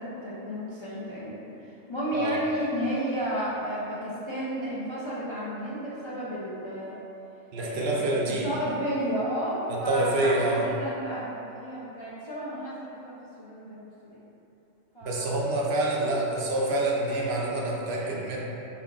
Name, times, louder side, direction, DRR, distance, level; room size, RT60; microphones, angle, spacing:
voice 1, 0.0-7.0 7.5-14.2 14.9-15.5 16.0-16.2 16.5-17.0 17.5-18.3, equal, 45° left, -10 dB, 0.3 m, -33 dB
voice 2, 7.5-8.4 9.7-10.7 15.0-18.4, right 2 dB, 65° right, -2 dB, 0.7 m, -27 dB
4.3 x 3.6 x 2.4 m, 2.9 s
omnidirectional pair, 1.3 m